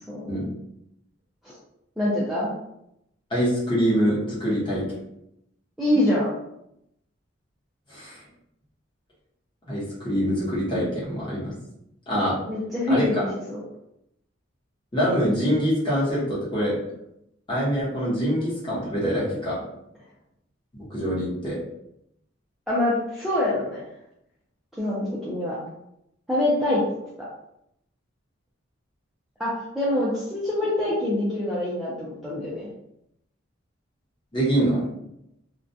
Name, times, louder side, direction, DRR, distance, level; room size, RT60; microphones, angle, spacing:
voice 1, 0.1-0.4 1.4-1.5 2.0-2.5 5.8-6.3 12.5-13.6 22.7-23.8 24.8-25.6 26.3-26.8 29.4-32.7, left 1 dB, ahead, -9 dB, 0.4 m, -25 dB
voice 2, 3.3-4.8 7.9-8.2 9.7-11.5 12.1-12.4 12.9-13.3 14.9-16.8 17.5-19.6 20.7-21.6 34.3-34.9, equal, 25° left, -8 dB, 1.0 m, -24 dB
2.4 x 2.1 x 2.6 m, 0.79 s
head